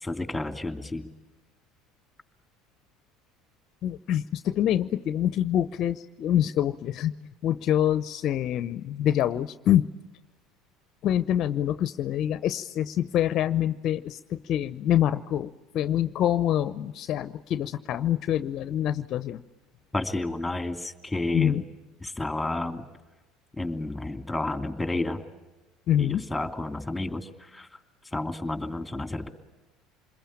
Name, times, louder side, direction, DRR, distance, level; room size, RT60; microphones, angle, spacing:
voice 1, 0.0-1.1 19.9-21.6 22.0-22.9 23.5-25.2 26.0-27.7 28.1-29.3, left 2 dB, 10° left, 7 dB, 3.0 m, -31 dB
voice 2, 3.8-7.1 7.4-9.9 11.0-19.4 21.3-21.6 25.9-26.3, left 11 dB, 55° left, 13 dB, 0.8 m, -26 dB
27.5 x 21.5 x 8.7 m, 1.1 s
hypercardioid pair, 75°, 0 cm